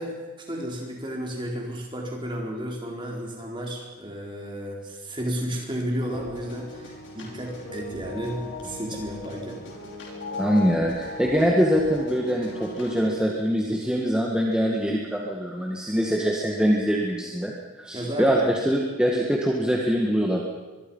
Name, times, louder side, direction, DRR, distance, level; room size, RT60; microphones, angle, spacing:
voice 1, 0.0-9.6 17.9-18.4, equal, 25° right, 0 dB, 4.2 m, -32 dB
sound 1, 6.0-13.2, left 2 dB, 60° left, 5.5 m, -38 dB
voice 2, 10.4-17.5 17.8-18.4 18.7-20.4, equal, 5° right, -2 dB, 1.9 m, -23 dB
24.5 x 22.5 x 5.6 m, 1.2 s
head